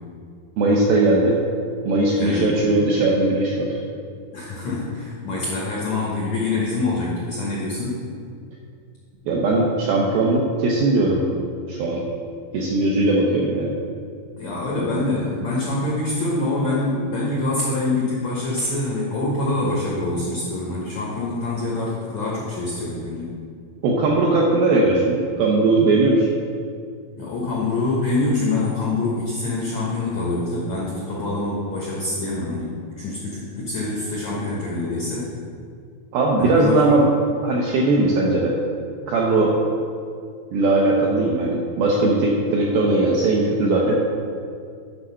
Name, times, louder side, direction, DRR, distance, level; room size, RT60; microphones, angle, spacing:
voice 1, 0.6-1.4 1.8-3.8 9.3-11.3 11.7-12.0 12.5-13.7 23.8-26.3 36.1-37.0 37.4-38.5 39.1-39.5 40.5-43.9, right 2 dB, 80° right, -3 dB, 2.1 m, -19 dB
voice 2, 2.2-2.6 4.3-8.0 14.4-23.3 27.2-35.3 36.4-36.8, left 2 dB, 80° left, -5 dB, 1.6 m, -25 dB
8.8 x 5.4 x 5.7 m, 2.3 s
omnidirectional pair, 5.2 m